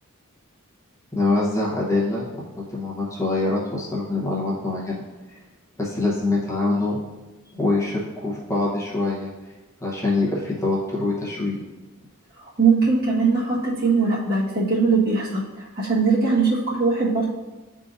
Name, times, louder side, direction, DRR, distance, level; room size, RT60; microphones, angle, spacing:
voice 1, 1.1-2.3 2.7-5.0 5.8-7.0 7.5-9.3 9.8-11.6, left 2 dB, 15° left, -5 dB, 1.0 m, -24 dB
voice 2, 12.6-17.3, right 4 dB, 45° right, -7 dB, 1.5 m, -21 dB
10.0 x 3.7 x 2.6 m, 1.1 s
head